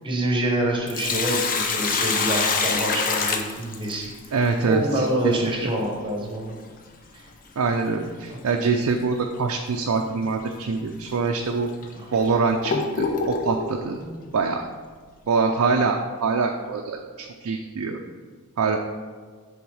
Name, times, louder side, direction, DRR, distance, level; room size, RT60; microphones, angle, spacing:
voice 1, 0.0-6.5 7.1-7.2 8.3-8.4 11.9-12.1 14.0-14.3, right 1 dB, 20° right, 0 dB, 0.9 m, -27 dB
Sink (filling or washing), 0.6-4.3 6.7-6.8 8.6-8.8 9.3-9.4 10.2-10.4 11.1-11.2 11.8-13.7, left 4 dB, 40° left, 0.6 m, -25 dB
voice 2, 4.3-5.7 7.6-11.7 12.1-14.0 14.3-14.7 15.3-18.0 18.6-18.8, right 4 dB, 80° right, 2 dB, 0.4 m, -24 dB
7.0 x 3.6 x 4.8 m, 1.5 s
head